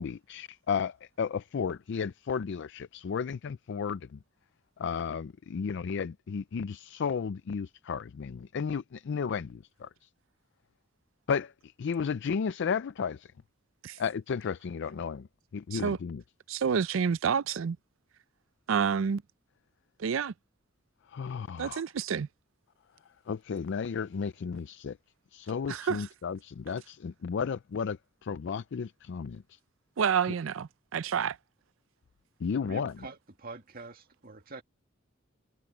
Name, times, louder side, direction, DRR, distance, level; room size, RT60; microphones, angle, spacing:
voice 1, 0.0-4.2 4.8-10.1 11.3-13.3 14.0-15.3 15.5-16.2 21.1-21.8 23.3-25.0 25.3-29.6 32.4-32.9, left 6 dB, 60° left, 0.4 m, -33 dB
voice 2, 16.5-17.8 18.7-19.2 20.0-20.3 21.6-22.3 25.7-26.1 30.0-31.4, right 6 dB, 75° right, 0.5 m, -29 dB
voice 3, 32.6-34.6, right 3 dB, 50° right, 2.1 m, -45 dB
head